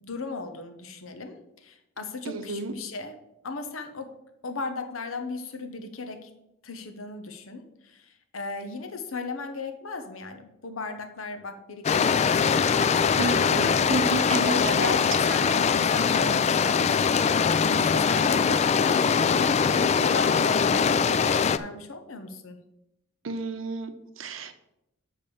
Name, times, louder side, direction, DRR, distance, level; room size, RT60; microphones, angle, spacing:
voice 1, 0.0-3.1 3.4-4.1 4.4-6.3 6.6-20.3 20.6-22.6, left 3 dB, 85° left, 7 dB, 1.0 m, -36 dB
voice 2, 2.2-2.7 13.2-14.9 23.2-24.5, right 3 dB, 70° right, 10 dB, 0.8 m, -31 dB
sound 1, 11.8-21.6, left 6 dB, 35° left, 0.3 m, -22 dB
6.7 x 5.1 x 7.1 m, 0.86 s
head